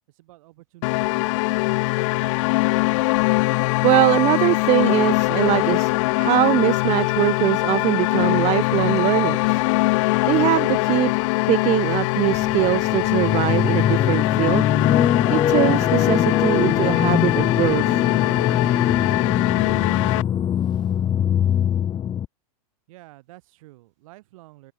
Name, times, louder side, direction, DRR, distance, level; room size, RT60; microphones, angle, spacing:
voice 1, 0.1-1.8 22.9-24.7, right 19 dB, 60° right, 6.8 m, -49 dB
sound 1, 0.8-20.2, left 24 dB, 55° left, 0.9 m, -22 dB
voice 2, 3.8-9.6 10.3-11.1 11.5-14.6 15.3-17.8, right 19 dB, 35° right, 0.7 m, -22 dB
electric organ(spacey), 12.3-22.3, left 9 dB, 25° left, 1.0 m, -22 dB
hypercardioid pair, 115°, 19 cm